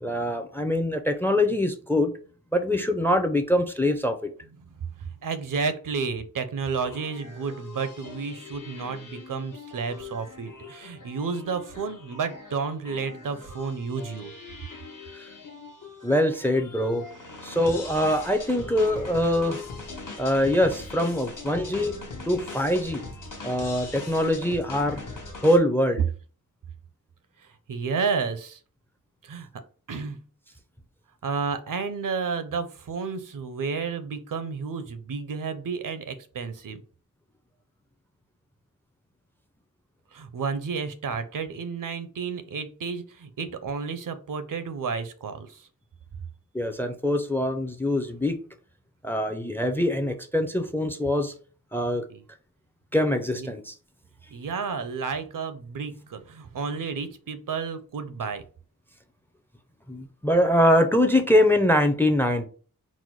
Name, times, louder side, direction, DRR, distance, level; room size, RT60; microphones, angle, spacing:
voice 1, 0.0-2.1 2.5-4.3 16.0-17.0 17.4-19.6 20.2-22.0 22.3-23.1 23.4-25.0 25.4-26.0 46.5-48.4 49.0-51.3 51.7-52.0 52.9-53.7 59.9-62.5, left 1 dB, 5° left, 0.5 m, -23 dB
voice 2, 5.0-14.6 21.6-22.2 27.4-28.6 29.2-29.5 29.9-30.2 31.2-36.8 40.1-45.7 52.1-52.2 53.4-53.5 54.3-58.4, right 5 dB, 70° right, 0.6 m, -31 dB
sound 1, 6.7-25.6, left 3 dB, 65° left, 1.1 m, -41 dB
4.0 x 2.1 x 4.5 m
wide cardioid pair, 105°, 34 cm